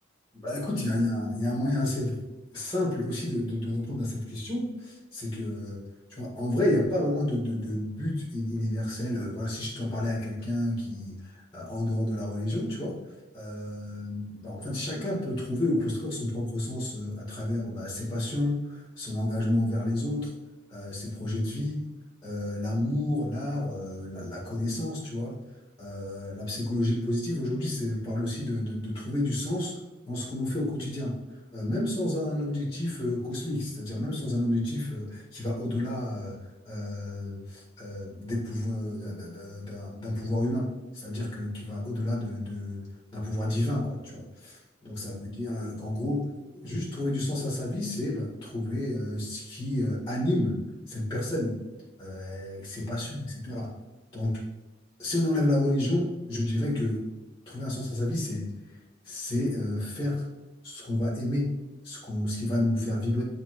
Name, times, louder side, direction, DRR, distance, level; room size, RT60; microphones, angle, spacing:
voice 1, 0.3-2.2 2.5-5.8 6.1-13.0 13.3-20.3 20.7-21.9 22.2-25.4 25.8-29.7 30.1-31.2 31.5-42.9 43.1-46.2 46.6-50.6 50.9-51.6 52.0-53.7 54.1-54.4 55.0-57.0 57.4-58.5 59.0-60.3 60.6-61.5 61.8-63.2, left 1 dB, 15° left, -6 dB, 1.8 m, -30 dB
8.1 x 4.0 x 3.1 m, 1.1 s
head